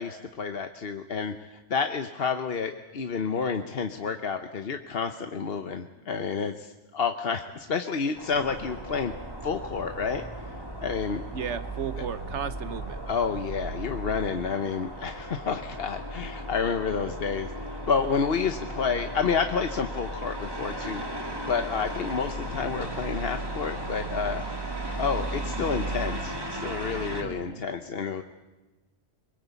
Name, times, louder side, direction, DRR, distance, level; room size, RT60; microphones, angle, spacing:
voice 1, 0.0-1.3 1.7-9.1 9.4-10.2 10.8-11.2 13.1-17.5 17.9-24.4 25.0-28.2, left 5 dB, 60° left, 7 dB, 1.1 m, -29 dB
sound 1, 8.2-27.2, right 1 dB, 20° right, 2.3 m, -35 dB
voice 2, 11.3-13.0 27.2-27.6, right 7 dB, 75° right, 13 dB, 1.3 m, -34 dB
23.5 x 21.5 x 8.2 m, 1.1 s
omnidirectional pair, 1.2 m